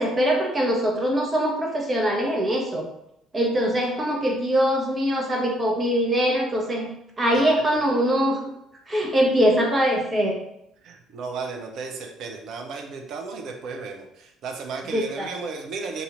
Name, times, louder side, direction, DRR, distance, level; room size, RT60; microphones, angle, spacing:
voice 1, 0.0-2.9 3.3-6.9 7.2-8.4 8.9-10.3 14.9-15.3, equal, 25° right, 0 dB, 1.1 m, -22 dB
voice 2, 10.8-16.0, right 4 dB, 50° right, 3 dB, 0.7 m, -34 dB
4.0 x 2.8 x 3.9 m, 0.79 s
figure-of-eight pair, 55°, 0 cm